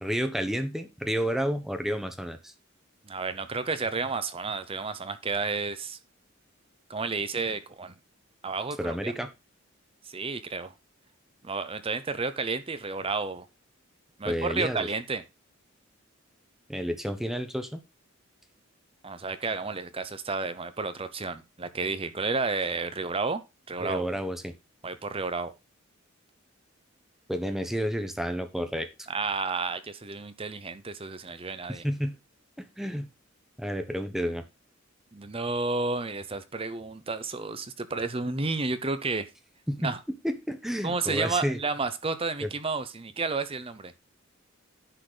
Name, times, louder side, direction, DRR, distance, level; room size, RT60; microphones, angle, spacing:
voice 1, 0.0-2.5 8.8-9.3 14.2-14.9 16.7-17.8 23.8-24.5 27.3-28.9 31.7-32.1 32.8-33.1 33.6-34.4 39.7-39.9 40.2-41.6 42.4-42.5, equal, ahead, 1.0 m, -30 dB
voice 2, 3.1-6.0 6.9-7.9 8.4-9.1 10.1-10.7 11.4-13.5 14.2-15.2 19.0-23.4 23.7-24.0 24.8-25.5 29.1-31.8 35.1-39.3 39.8-40.0 40.8-43.9, right 3 dB, 30° right, 0.8 m, -31 dB
10.0 x 4.2 x 5.0 m
head